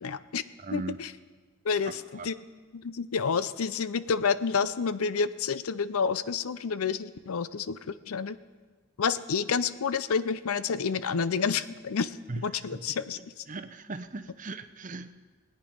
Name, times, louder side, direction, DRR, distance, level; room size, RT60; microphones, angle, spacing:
voice 1, 0.0-0.4 0.7-1.1 1.6-2.3 2.7-8.4 9.0-12.2 12.4-13.2, left 5 dB, 85° left, 15 dB, 0.5 m, -29 dB
voice 2, 0.6-1.1 2.1-2.3 12.3-12.9 13.1-15.1, right 3 dB, 35° right, 10 dB, 0.6 m, -39 dB
19.5 x 9.1 x 5.3 m, 1.4 s
head